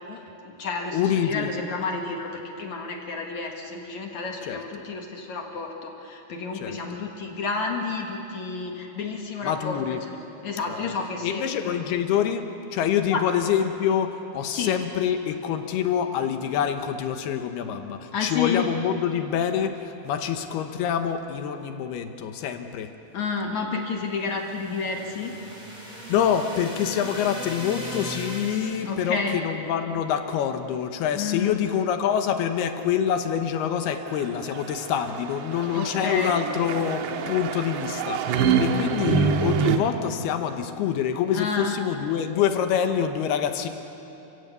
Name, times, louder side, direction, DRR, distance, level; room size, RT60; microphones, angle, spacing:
voice 1, 0.1-9.8 10.4-11.7 13.1-13.2 14.5-14.8 18.1-18.7 23.1-25.4 28.9-29.4 31.1-31.5 35.7-36.3 41.3-41.8, left 4 dB, 55° left, 1 dB, 2.2 m, -30 dB
voice 2, 0.9-1.5 4.4-4.6 6.5-6.8 9.4-10.0 10.7-10.9 11.2-22.9 26.1-43.7, left 8 dB, 70° left, 7 dB, 2.8 m, -26 dB
sound 1, 24.1-29.0, right 1 dB, 10° right, 4.4 m, -38 dB
sound 2, 34.1-39.8, right 6 dB, 80° right, 3.3 m, -26 dB
29.5 x 16.5 x 8.2 m, 2.9 s
omnidirectional pair, 5.1 m